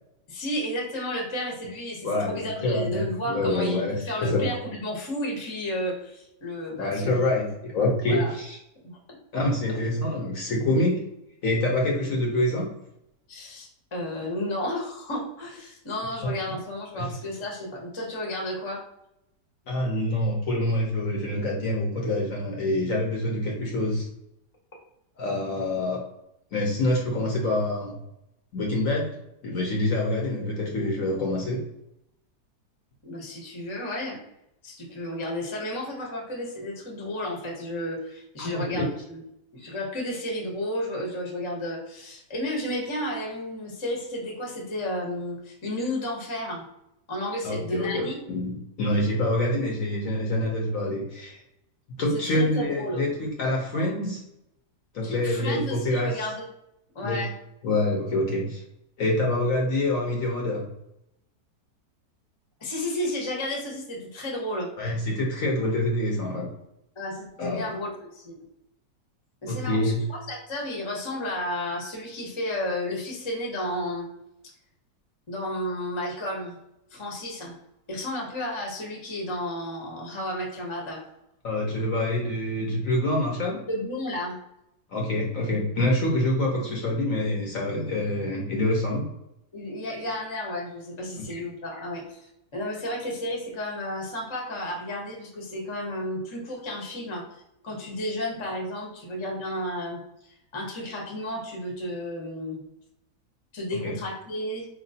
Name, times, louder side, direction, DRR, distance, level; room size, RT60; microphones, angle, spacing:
voice 1, 0.3-7.2 8.0-8.3 8.8-9.0 13.3-18.8 33.0-34.2 34.6-39.2 39.5-46.6 47.1-48.2 52.1-53.0 55.0-56.5 56.9-57.3 62.6-64.7 67.0-68.3 69.4-74.1 75.3-76.6 76.9-77.6 77.9-81.0 83.7-84.4 89.5-97.2 97.6-100.0 100.5-102.6 103.5-104.7, left 1 dB, 20° left, -1 dB, 0.8 m, -32 dB
voice 2, 2.0-4.5 6.8-8.6 9.3-11.0 11.4-12.7 16.2-16.6 16.9-17.1 19.7-24.1 25.2-26.0 26.5-28.0 28.5-29.2 29.4-31.7 38.4-38.9 47.4-51.4 52.0-54.2 54.9-56.2 57.0-57.2 57.6-58.6 59.0-60.7 64.8-66.5 67.4-67.7 69.5-70.0 81.4-83.7 84.9-89.1 91.3-91.4 103.8-103.9, left 1 dB, 60° left, -1 dB, 1.0 m, -26 dB
4.5 x 3.0 x 2.7 m, 0.83 s
omnidirectional pair, 1.8 m